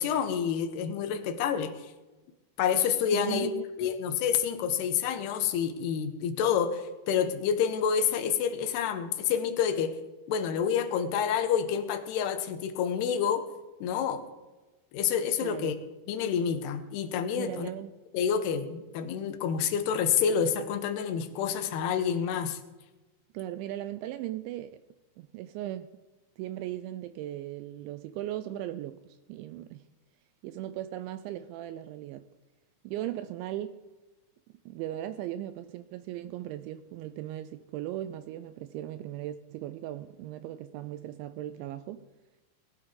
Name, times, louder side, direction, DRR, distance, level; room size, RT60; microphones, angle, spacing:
voice 1, 0.0-1.9 2.6-3.5 3.8-10.0 10.3-13.5 13.8-14.2 14.9-15.7 16.1-17.7 18.1-22.6, left 8 dB, 75° left, 2.5 m, -28 dB
voice 2, 3.1-3.9 15.4-15.8 17.4-17.9 23.3-24.8 25.2-25.9 26.4-29.8 30.4-32.3 32.8-33.8 34.7-42.1, right 13 dB, 85° right, 2.6 m, -38 dB
20.5 x 12.5 x 3.8 m
omnidirectional pair, 5.8 m